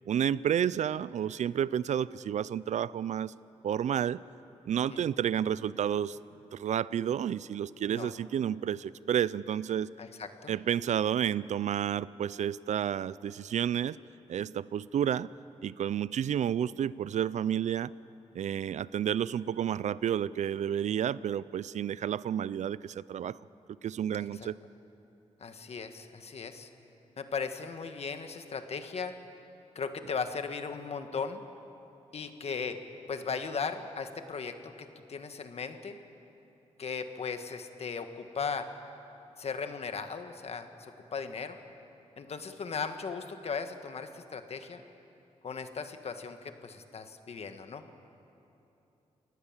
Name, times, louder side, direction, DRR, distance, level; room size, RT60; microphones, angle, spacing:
voice 1, 0.1-3.3 3.6-4.2 4.7-6.2 6.5-9.9 10.5-14.0 14.3-15.3 15.6-17.9 18.3-23.4 23.8-24.6, right 9 dB, 75° right, 19 dB, 0.4 m, -30 dB
voice 2, 10.0-10.5 24.3-24.5 25.4-26.7 27.2-29.2 29.7-31.4 32.1-32.8 33.1-36.0 36.8-38.7 39.4-41.6 42.2-44.8 45.4-47.8, left 5 dB, 55° left, 7 dB, 1.6 m, -37 dB
28.0 x 18.5 x 7.4 m, 2.9 s
cardioid pair, 95°, 12 cm